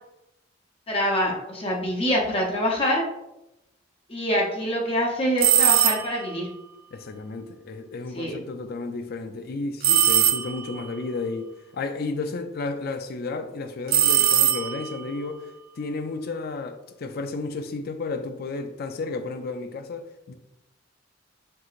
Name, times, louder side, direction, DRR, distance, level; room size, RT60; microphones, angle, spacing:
voice 1, 0.9-3.0 4.1-6.5 8.1-8.3, equal, 30° left, 0.8 m, -25 dB
sound 1, 5.4-6.3 9.8-10.8 13.9-15.0, right 11 dB, 50° right, 0.3 m, -20 dB
voice 2, 6.9-15.5 15.8-20.3, left 3 dB, 55° left, 0.4 m, -32 dB
4.7 x 3.8 x 2.4 m
head